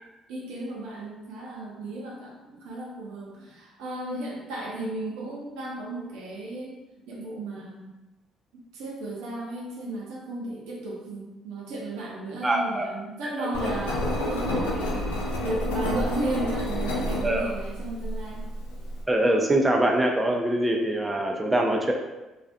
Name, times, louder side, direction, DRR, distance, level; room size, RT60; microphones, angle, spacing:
voice 1, 0.3-6.8 7.1-7.9 8.7-15.1 15.4-18.5, right 2 dB, 80° right, -3 dB, 0.6 m, -34 dB
voice 2, 12.4-12.9 13.2-13.5 17.2-17.5 19.1-21.9, right 1 dB, 15° right, 1 dB, 0.4 m, -24 dB
Engine, 13.5-19.0, left 1 dB, 90° left, 0.4 m, -29 dB
2.3 x 2.1 x 2.5 m, 1.0 s
hypercardioid pair, 60°, 0 cm